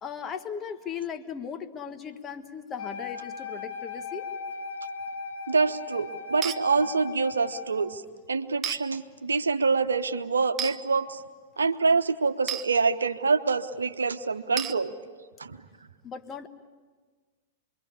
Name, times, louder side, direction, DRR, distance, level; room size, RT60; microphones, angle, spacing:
voice 1, 0.0-4.3 16.0-16.5, left 7 dB, 20° left, 8 dB, 1.4 m, -37 dB
Wind instrument woodwind instrument, 2.8-7.8, left 5 dB, 70° left, 5.9 m, -38 dB
voice 2, 5.5-8.0 8.3-11.2 11.6-14.9 15.4-15.6, right 4 dB, 70° right, 10 dB, 1.1 m, -26 dB
sound 1, 6.4-6.6 8.6-8.8 10.6-10.8 12.5-12.7 14.6-14.8, right 8 dB, 20° right, 1.0 m, -31 dB
27.0 x 22.5 x 8.5 m, 1.5 s
figure-of-eight pair, 100°, 0 cm